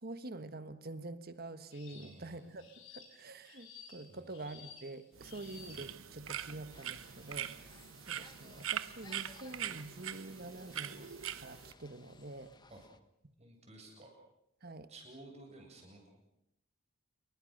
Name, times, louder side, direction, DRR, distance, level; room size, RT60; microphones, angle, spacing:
voice 1, 0.0-2.6 2.9-12.5 14.6-14.9, right 2 dB, 45° right, 11 dB, 1.4 m, -47 dB
sound 1, 1.7-2.2 2.6-6.1 6.7-7.1 7.7-11.2 11.7-12.5, left 5 dB, 70° left, 5.4 m, -57 dB
voice 2, 1.9-2.5 4.1-4.4 12.7-12.8 13.4-14.1 14.9-16.2, right 2 dB, 30° right, 1 dB, 8.0 m, -54 dB
sound 2, 5.2-11.7, right 10 dB, 70° right, 1.1 m, -43 dB
sound 3, 6.7-13.0, left 3 dB, 20° left, 1.1 m, -60 dB
28.5 x 23.0 x 6.6 m, 0.79 s
head